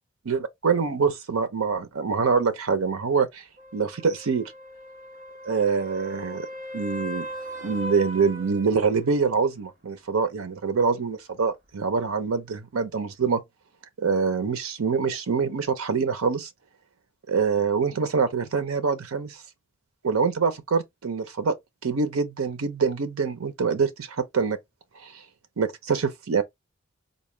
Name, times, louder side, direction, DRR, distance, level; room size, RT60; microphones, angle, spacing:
voice 1, 0.2-3.4 3.7-4.4 5.4-6.5 6.7-7.3 7.6-13.4 14.0-16.5 17.3-19.4 20.0-21.6 21.8-24.6 25.0-25.2 25.6-26.4, right 5 dB, 85° right, 0.6 m, -25 dB
sound 1, 3.6-9.2 13.3-13.4, equal, 35° right, 0.9 m, -38 dB
4.0 x 2.1 x 3.2 m
head